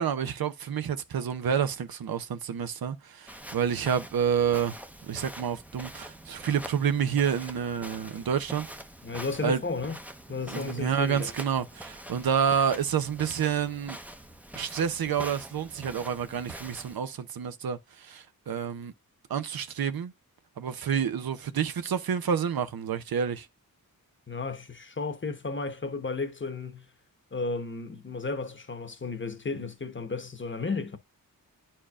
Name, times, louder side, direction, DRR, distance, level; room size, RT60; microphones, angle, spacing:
voice 1, 0.0-4.7 5.1-8.7 9.4-9.6 10.5-14.0 14.6-18.9 19.3-20.1 20.6-23.5, right 7 dB, 75° right, 0.8 m, -29 dB
Walk footsteps, 3.3-17.0, right 1 dB, 5° right, 0.7 m, -45 dB
voice 2, 9.0-10.0 10.3-11.3 24.3-26.9 27.3-31.0, left 4 dB, 30° left, 1.1 m, -33 dB
10.0 x 4.5 x 2.3 m
wide cardioid pair, 80°, 36 cm